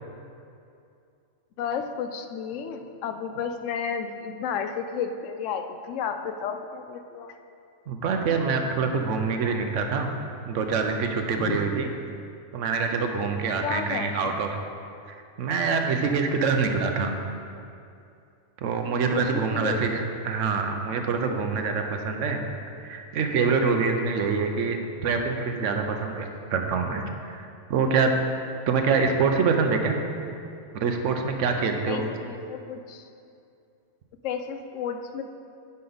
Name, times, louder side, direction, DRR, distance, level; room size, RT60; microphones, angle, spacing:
voice 1, 1.6-7.4 11.4-11.6 13.6-14.3 19.0-19.9 31.9-33.1 34.2-35.2, left 7 dB, 80° left, 7 dB, 0.9 m, -32 dB
voice 2, 7.9-10.1 10.5-11.9 12.5-14.6 15.1-17.2 18.6-22.5 22.8-28.1 28.7-30.0 30.7-32.1, right 5 dB, 80° right, 5 dB, 1.0 m, -25 dB
9.8 x 5.3 x 4.0 m, 2.5 s
omnidirectional pair, 1.3 m